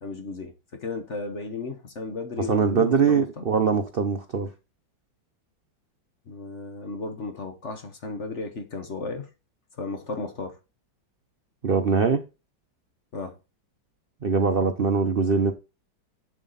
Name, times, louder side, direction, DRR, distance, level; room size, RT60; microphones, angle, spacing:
voice 1, 0.0-0.5 0.8-3.4 6.3-9.3 9.8-10.5 13.1-13.3, left 3 dB, 40° left, 1.5 m, -34 dB
voice 2, 2.4-4.5 11.6-12.2 14.2-15.5, right 5 dB, 60° right, 0.6 m, -22 dB
8.0 x 7.2 x 4.1 m
omnidirectional pair, 2.1 m